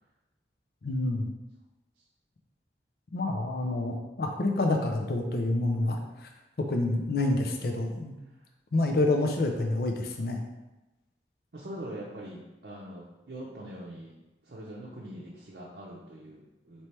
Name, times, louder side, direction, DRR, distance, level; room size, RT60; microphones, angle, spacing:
voice 1, 0.8-1.3 3.1-6.3 6.7-8.1 8.7-10.4, left 2 dB, 55° left, 3 dB, 0.4 m, -28 dB
voice 2, 11.5-14.1 14.4-16.9, right 1 dB, 60° right, -5 dB, 0.6 m, -43 dB
3.3 x 3.0 x 4.3 m, 1.0 s
head